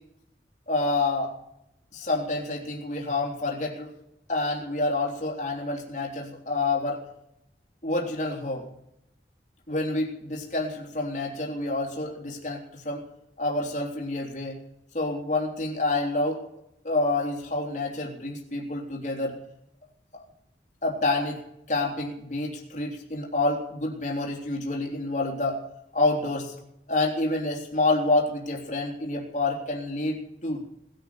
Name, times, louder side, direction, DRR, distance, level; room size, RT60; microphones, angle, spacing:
voice 1, 0.7-1.3 1.9-3.9 4.3-7.0 7.8-8.6 9.7-13.0 13.4-14.6 14.9-16.4 16.8-19.4 20.1-20.2 20.8-21.4 21.7-25.6 25.9-26.6 26.9-30.6, left 2 dB, 40° left, 0 dB, 3.5 m, -28 dB
19.5 x 10.5 x 7.0 m, 0.78 s
head